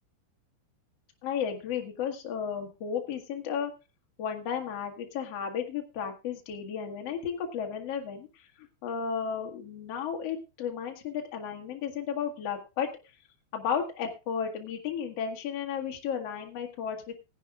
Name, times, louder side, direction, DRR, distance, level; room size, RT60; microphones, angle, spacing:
voice 1, 1.2-3.7 4.2-8.3 8.8-12.9 13.5-17.2, left 7 dB, 55° left, 3 dB, 1.8 m, -33 dB
20.0 x 10.0 x 2.5 m, 0.27 s
omnidirectional pair, 5.3 m